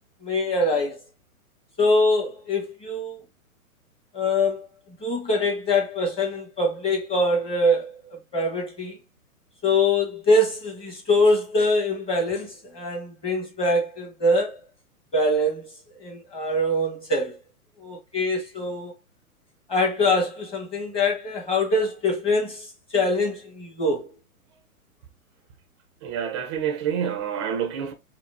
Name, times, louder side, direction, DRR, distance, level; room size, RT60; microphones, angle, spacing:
voice 1, 0.2-1.0 1.8-3.2 4.1-7.9 8.3-9.0 9.6-14.6 15.1-15.7 16.0-17.4 17.8-18.9 19.7-24.1, left 1 dB, 10° left, 1.2 m, -24 dB
voice 2, 26.0-27.9, right 8 dB, 20° right, 0.4 m, -27 dB
5.6 x 2.0 x 2.5 m
hypercardioid pair, 125°, 45 cm